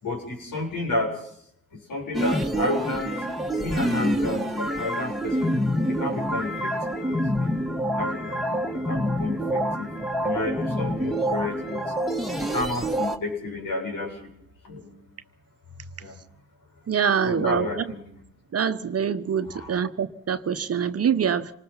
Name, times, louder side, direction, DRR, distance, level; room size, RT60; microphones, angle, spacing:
voice 1, 0.0-1.3 1.7-3.2 3.6-5.6 5.9-7.5 7.9-9.9 10.2-11.8 12.4-14.3 14.6-15.0 16.0-16.1 17.2-18.0 19.5-19.8, left 2 dB, 65° left, 7.3 m, -31 dB
sound 1, 2.1-13.2, equal, ahead, 2.3 m, -27 dB
voice 2, 16.9-17.9 18.5-21.5, right 7 dB, 45° right, 1.2 m, -25 dB
27.5 x 19.5 x 5.7 m
hypercardioid pair, 50°, 34 cm